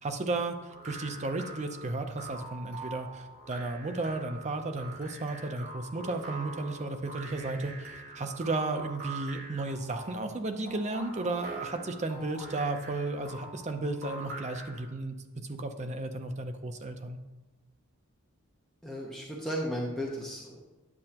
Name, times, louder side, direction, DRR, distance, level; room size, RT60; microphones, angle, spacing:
voice 1, 0.0-17.2, right 2 dB, 30° right, 6 dB, 0.6 m, -34 dB
sound 1, 0.7-14.9, right 3 dB, 65° right, 2.6 m, -44 dB
voice 2, 18.8-20.7, equal, ahead, -4 dB, 0.9 m, -35 dB
9.7 x 7.6 x 2.9 m, 1.1 s
head